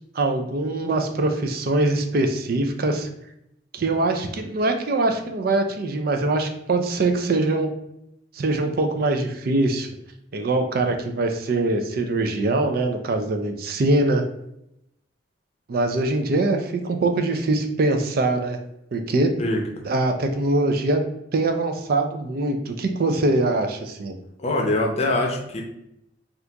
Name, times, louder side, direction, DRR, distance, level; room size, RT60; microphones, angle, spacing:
voice 1, 0.1-3.1 3.7-7.7 8.3-9.9 10.3-14.2 15.7-18.6 18.9-19.4 19.8-21.0 21.3-24.1, right 2 dB, 55° right, 5 dB, 0.4 m, -23 dB
voice 2, 19.4-19.9 24.4-25.6, left 1 dB, 35° left, 1 dB, 0.6 m, -24 dB
2.8 x 2.4 x 3.4 m, 0.80 s
head